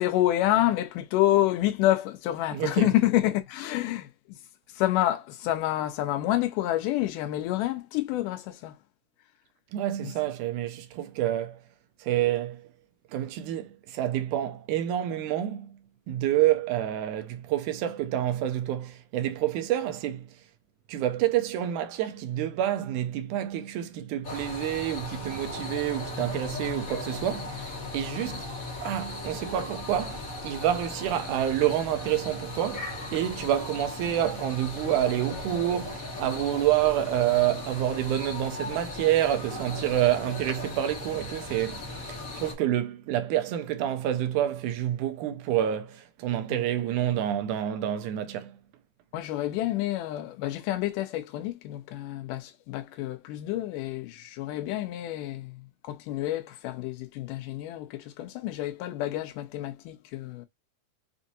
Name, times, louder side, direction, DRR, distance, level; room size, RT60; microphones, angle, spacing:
voice 1, 0.0-4.1 4.8-8.8 10.0-10.1 34.9-35.0 46.5-46.6 49.1-60.5, left 14 dB, 90° left, 2.3 m, -28 dB
voice 2, 2.5-2.9 9.7-11.6 12.0-12.7 13.1-15.7 16.1-20.3 20.9-28.5 28.8-41.8 42.1-48.5, right 12 dB, 80° right, 2.0 m, -28 dB
sound 1, 24.2-42.5, left 2 dB, 50° left, 0.9 m, -37 dB
6.0 x 2.7 x 2.6 m
omnidirectional pair, 3.6 m